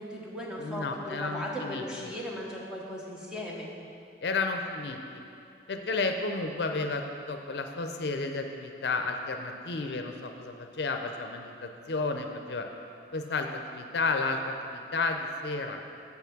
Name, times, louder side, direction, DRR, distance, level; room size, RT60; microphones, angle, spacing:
voice 1, 0.0-3.7, equal, 5° right, -4 dB, 1.0 m, -37 dB
voice 2, 0.6-2.1 4.2-5.0 5.7-12.6 13.1-15.8, left 3 dB, 65° left, 5 dB, 0.5 m, -32 dB
7.8 x 5.8 x 5.9 m, 2.6 s
head